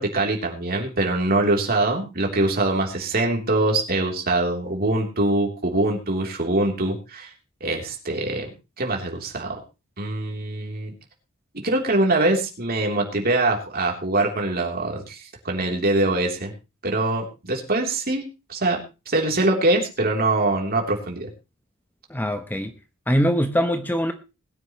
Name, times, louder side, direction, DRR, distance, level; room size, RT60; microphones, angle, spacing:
voice 1, 0.0-7.3 7.6-8.5 8.8-9.6 10.0-10.9 11.6-16.5 16.8-18.8 19.1-21.3, right 2 dB, 45° right, 1 dB, 3.4 m, -23 dB
voice 2, 22.1-22.7 23.1-24.1, equal, 10° left, 8 dB, 0.9 m, -22 dB
21.0 x 9.9 x 3.1 m, 0.29 s
head